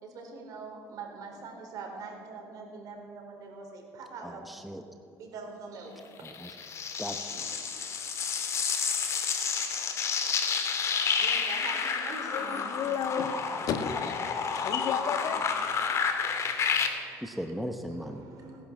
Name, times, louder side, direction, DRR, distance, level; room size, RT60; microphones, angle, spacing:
voice 1, 0.0-4.4 5.1-5.9 7.3-7.5 11.2-12.7 15.1-15.2 16.0-17.5 17.9-18.6, right 4 dB, 60° right, 2 dB, 4.3 m, -44 dB
voice 2, 4.2-4.8 6.2-6.5 7.0-7.3 17.2-18.2, equal, ahead, 6 dB, 1.0 m, -37 dB
sound 1, 6.3-16.9, left 6 dB, 45° left, 2.2 m, -30 dB
voice 3, 12.3-13.3 13.6-14.2 14.5-15.6, left 7 dB, 60° left, 8 dB, 1.5 m, -32 dB
18.0 x 11.0 x 7.4 m, 2.6 s
cardioid pair, 105°, 7 cm